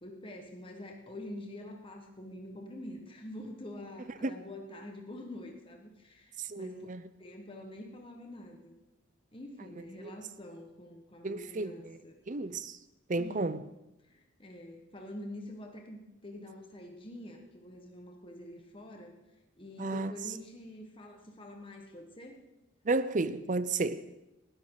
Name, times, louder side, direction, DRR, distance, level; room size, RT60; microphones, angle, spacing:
voice 1, 0.0-6.9 7.2-8.7 9.3-12.1 13.2-13.6 14.1-19.1 19.5-22.4, left 1 dB, 25° left, 1.6 m, -46 dB
voice 2, 6.4-7.0 10.0-10.1 11.2-12.0 12.3-12.8 13.1-13.6 19.8-20.1 22.9-24.0, right 3 dB, 40° right, 0.6 m, -32 dB
20.0 x 13.0 x 4.0 m
head